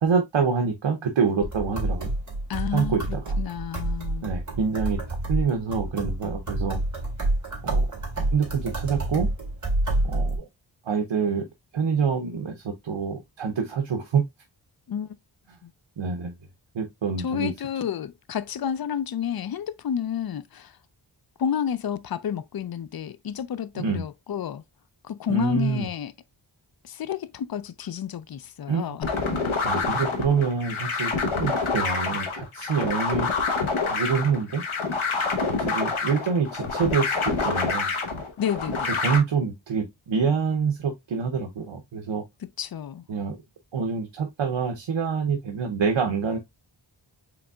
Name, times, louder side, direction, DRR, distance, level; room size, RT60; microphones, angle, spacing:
voice 1, 0.0-2.1 2.7-3.4 4.2-5.0 5.3-6.8 7.6-7.9 8.3-9.3 10.0-10.5 10.9-11.4 11.7-14.2 16.0-16.3 16.7-17.5 23.8-24.0 25.3-25.9 28.7-29.0 29.6-33.3 33.8-34.6 35.6-37.9 39.0-42.2 43.1-43.4 43.7-46.4, right 5 dB, 75° right, 0.7 m, -26 dB
sound 1, 1.4-10.4, right 2 dB, 35° right, 2.1 m, -28 dB
voice 2, 2.5-4.3 14.9-15.2 15.6-15.7 17.2-20.7 21.4-24.6 25.0-26.1 26.8-29.1 38.4-39.0 42.6-43.0, left 8 dB, 50° left, 0.4 m, -30 dB
sound 2, 29.0-39.2, left 4 dB, 90° left, 1.0 m, -27 dB
5.0 x 3.4 x 2.2 m
wide cardioid pair, 65°, 47 cm